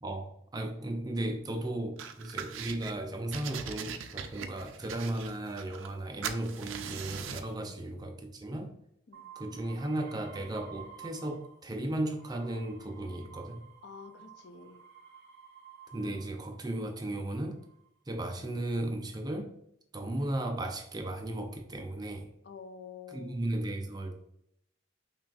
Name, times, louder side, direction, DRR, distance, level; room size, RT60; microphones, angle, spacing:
voice 1, 0.0-8.7 9.4-13.7 15.9-17.6 18.1-19.5 19.9-22.3 23.1-24.2, right 1 dB, 20° right, 4 dB, 0.4 m, -35 dB
sound 1, 2.0-2.9 3.3-6.0 6.2-7.5, right 7 dB, 80° right, 0.4 m, -41 dB
sound 2, 9.1-11.7 12.0-16.6 17.3-17.9, right 7 dB, 55° right, 0.7 m, -52 dB
voice 2, 13.8-14.8 22.4-23.4, left 5 dB, 55° left, 8 dB, 0.4 m, -48 dB
5.8 x 2.4 x 2.3 m, 0.76 s
head